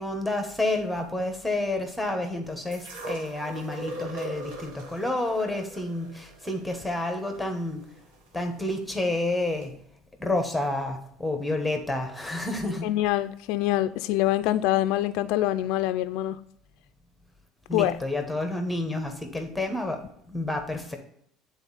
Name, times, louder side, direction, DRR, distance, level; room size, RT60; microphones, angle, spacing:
voice 1, 0.0-7.8 8.3-9.7 10.2-12.9 17.7-20.0 20.3-21.0, left 2 dB, 5° left, 5 dB, 1.1 m, -29 dB
sound 1, 2.7-8.8 9.6-9.7, right 2 dB, 80° right, 1.3 m, -40 dB
voice 2, 12.8-16.4 17.7-18.0, left 14 dB, 70° left, 11 dB, 0.3 m, -25 dB
8.1 x 4.0 x 4.0 m, 0.69 s
cardioid pair, 120°, 0 cm